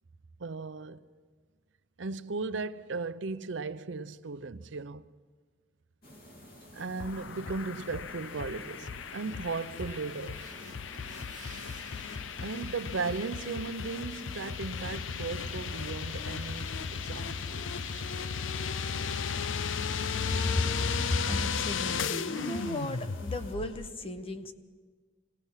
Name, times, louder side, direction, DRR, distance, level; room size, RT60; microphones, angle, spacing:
voice 1, 0.4-1.0 2.0-5.0 6.7-10.5 12.4-18.1, right 4 dB, 75° right, 0.7 m, -37 dB
sound 1, 6.0-23.5, equal, 55° left, 2.7 m, -51 dB
sound 2, 7.0-23.9, left 6 dB, 85° left, 0.5 m, -35 dB
sound 3, 9.5-19.3 19.6-23.7, right 4 dB, 45° right, 1.2 m, -54 dB
voice 2, 20.3-20.7 21.1-24.5, left 1 dB, 30° left, 1.1 m, -34 dB
26.0 x 18.5 x 5.7 m
head